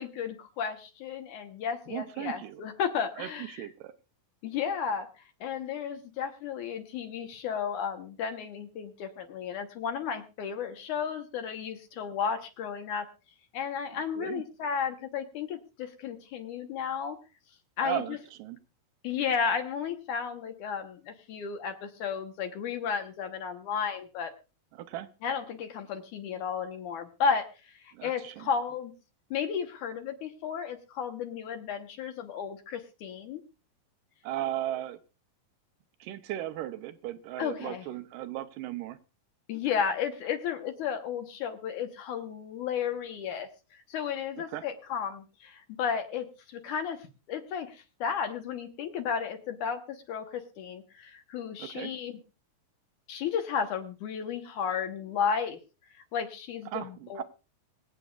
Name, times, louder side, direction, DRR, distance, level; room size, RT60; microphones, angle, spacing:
voice 1, 0.0-3.7 4.4-13.1 13.5-17.2 17.8-18.2 19.0-24.3 25.2-28.9 29.3-33.4 37.4-37.9 39.5-52.2 53.1-55.6 56.0-57.2, left 7 dB, 70° left, 6 dB, 2.4 m, -33 dB
voice 2, 1.9-2.6 3.2-3.9 14.2-14.4 17.8-18.6 24.8-25.1 27.9-28.5 34.2-35.0 36.0-39.0 44.5-44.6 51.6-51.9 56.7-57.2, right 13 dB, 80° right, 10 dB, 2.2 m, -36 dB
25.0 x 8.3 x 2.4 m, 0.32 s
omnidirectional pair, 4.0 m